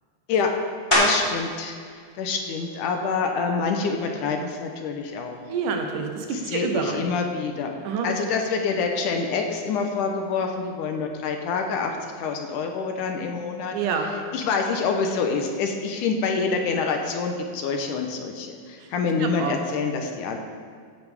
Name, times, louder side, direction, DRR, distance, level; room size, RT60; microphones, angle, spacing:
sound 1, 0.9-1.5 2.1-6.5 7.0-12.2 12.4-18.1, equal, 10° left, 3.2 m, -33 dB
voice 1, 1.0-1.7 2.2-5.4 6.5-7.7 8.0-13.7 14.3-20.4, left 5 dB, 75° left, 3 dB, 2.3 m, -26 dB
voice 2, 5.5-7.0 7.8-8.1 13.7-14.1 18.8-18.9 19.2-19.6, right 5 dB, 75° right, 3 dB, 2.5 m, -27 dB
16.0 x 9.6 x 3.6 m, 2.1 s
omnidirectional pair, 3.9 m